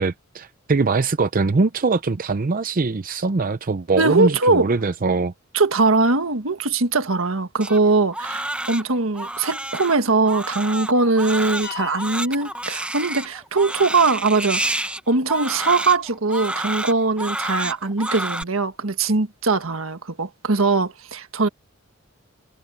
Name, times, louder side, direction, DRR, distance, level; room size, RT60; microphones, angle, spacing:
voice 1, 0.0-5.3, right 3 dB, 40° right, 0.6 m, -22 dB
voice 2, 4.0-4.7 5.5-21.5, right 3 dB, 80° right, 1.6 m, -21 dB
Crying sobbing, 7.6-18.4, right 1 dB, 5° right, 1.0 m, -29 dB
sound 1, 11.6-13.5, left 11 dB, 55° left, 4.4 m, -40 dB
head